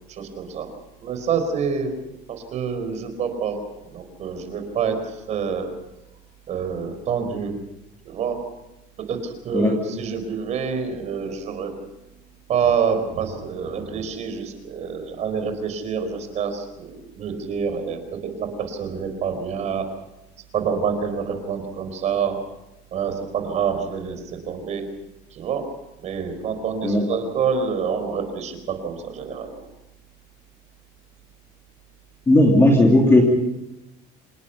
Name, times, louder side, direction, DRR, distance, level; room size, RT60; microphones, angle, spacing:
voice 1, 0.1-0.7 1.0-5.7 6.5-7.6 8.0-8.5 9.0-11.7 12.5-19.9 20.5-22.4 22.9-24.9 25.3-25.7 26.0-29.7, right 6 dB, 40° right, 7 dB, 4.6 m, -27 dB
voice 2, 32.3-33.2, left 1 dB, 15° left, 0 dB, 3.0 m, -15 dB
26.5 x 20.5 x 5.8 m, 0.92 s
cardioid pair, 150°, 18 cm